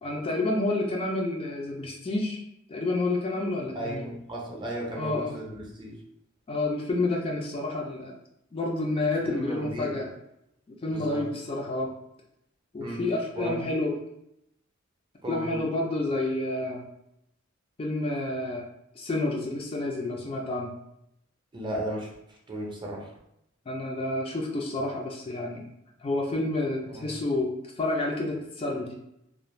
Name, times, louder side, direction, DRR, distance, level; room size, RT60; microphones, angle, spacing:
voice 1, 0.0-2.4 2.7-4.0 4.9-5.4 6.5-8.1 8.5-10.1 10.7-11.9 12.7-14.0 15.3-16.8 17.8-18.6 18.9-20.8 23.7-25.7 26.0-28.9, left 2 dB, 30° left, -1 dB, 0.4 m, -29 dB
voice 2, 3.7-6.0 9.2-10.0 10.9-11.3 12.8-13.0 13.4-13.7 15.2-15.6 21.5-22.1 22.5-23.1 26.8-27.1, right 1 dB, 25° right, -2 dB, 0.6 m, -35 dB
2.4 x 2.1 x 3.1 m, 0.80 s
head